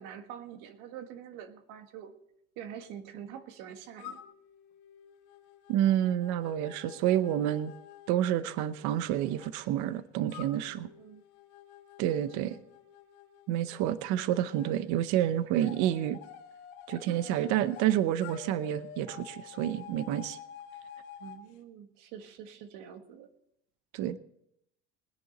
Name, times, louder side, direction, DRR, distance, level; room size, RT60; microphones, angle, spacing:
voice 1, 0.0-2.1 2.5-4.2 11.0-11.2 12.1-12.6 15.5-15.7 16.9-17.5 21.2-23.3, right 9 dB, 85° right, 8 dB, 1.7 m, -45 dB
sound 1, 4.0-9.5 10.3-14.7 15.6-17.9 18.2-21.4, left 9 dB, 80° left, 1.6 m, -50 dB
voice 2, 5.7-7.7 8.1-10.9 12.0-12.6 13.5-16.2 16.9-20.4 23.9-24.2, right 11 dB, 70° right, 14 dB, 0.8 m, -29 dB
19.5 x 10.5 x 4.1 m, 0.76 s
cardioid pair, 150°, 31 cm